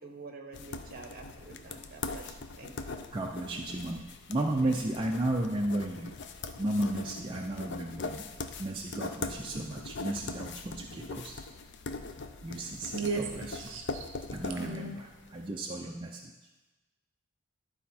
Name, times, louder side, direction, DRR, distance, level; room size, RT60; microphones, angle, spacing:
voice 1, 0.0-3.0 4.6-4.7, right 3 dB, 45° right, 3 dB, 1.1 m, -48 dB
sound 1, 0.5-15.4, left 3 dB, 55° left, 0.5 m, -41 dB
voice 2, 3.1-4.0 4.3-6.1 6.6-8.2 8.6-11.4 12.4-13.6 14.3-16.3, right 1 dB, 25° right, 0 dB, 0.5 m, -33 dB
voice 3, 12.9-14.1 14.6-15.0, right 4 dB, 65° right, 4 dB, 0.7 m, -35 dB
11.5 x 4.2 x 4.3 m, 1.2 s
head